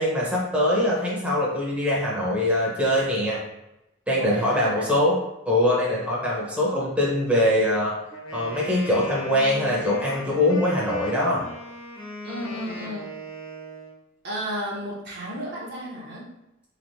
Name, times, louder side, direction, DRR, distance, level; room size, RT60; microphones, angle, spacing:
voice 1, 0.0-3.4 4.1-5.2 5.5-7.9 8.3-11.4, left 1 dB, 5° right, -5 dB, 1.1 m, -23 dB
voice 2, 4.2-4.9 12.2-13.2 14.2-16.4, equal, 55° right, -5 dB, 1.1 m, -33 dB
Wind instrument woodwind instrument, 8.1-14.0, left 1 dB, 80° left, 1.2 m, -38 dB
4.2 x 3.2 x 2.8 m, 0.90 s
head